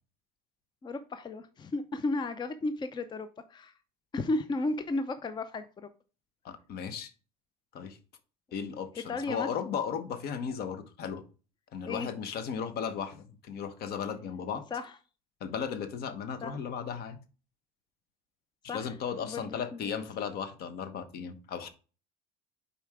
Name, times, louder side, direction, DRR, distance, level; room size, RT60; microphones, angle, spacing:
voice 1, 0.8-3.7 4.1-5.9 9.1-9.5 11.8-12.1 14.7-14.9 16.4-16.5 18.7-18.9 19.2-20.1, left 2 dB, 25° left, 0.6 m, -34 dB
voice 2, 6.4-7.1 7.7-8.0 8.5-11.2 11.7-14.7 15.4-17.2 18.6-21.7, left 7 dB, 55° left, 1.1 m, -36 dB
5.6 x 4.4 x 4.7 m
supercardioid pair, 105°, 19 cm